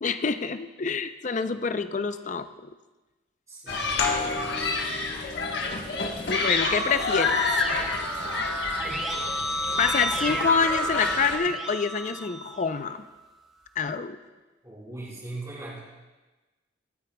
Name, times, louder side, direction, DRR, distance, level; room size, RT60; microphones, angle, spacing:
voice 1, 0.0-2.7 6.2-7.4 9.8-13.1 13.8-14.2, left 5 dB, 40° left, 11 dB, 0.4 m, -27 dB
voice 2, 3.5-4.9 14.6-15.8, right 2 dB, 15° right, -7 dB, 4.6 m, -41 dB
Human group actions, 3.7-11.4, left 3 dB, 60° left, 1.2 m, -29 dB
sound 1, 4.0-9.3, left 4 dB, 85° left, 1.7 m, -36 dB
Keyboard (musical), 6.3-12.9, right 1 dB, ahead, 2.3 m, -32 dB
24.0 x 9.6 x 2.2 m, 1.2 s
head